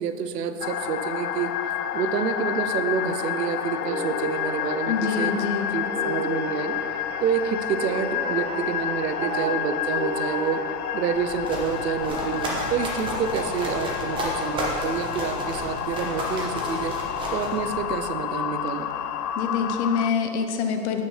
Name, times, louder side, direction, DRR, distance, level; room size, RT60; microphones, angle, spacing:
voice 1, 0.0-1.5 1.9-5.3 5.7-6.8 7.2-10.6 10.9-16.9 17.3-18.9, right 6 dB, 85° right, 10 dB, 0.8 m, -28 dB
sound 1, 0.6-20.1, left 10 dB, 70° left, 0.6 m, -30 dB
sound 2, 2.6-10.6, right 1 dB, 55° right, 1.5 m, -34 dB
voice 2, 4.9-5.8 19.3-21.0, left 6 dB, 45° left, 5 dB, 0.9 m, -25 dB
sound 3, 11.1-18.1, equal, 10° right, 0.8 m, -32 dB
9.5 x 8.2 x 3.3 m, 2.3 s
hypercardioid pair, 150°, 48 cm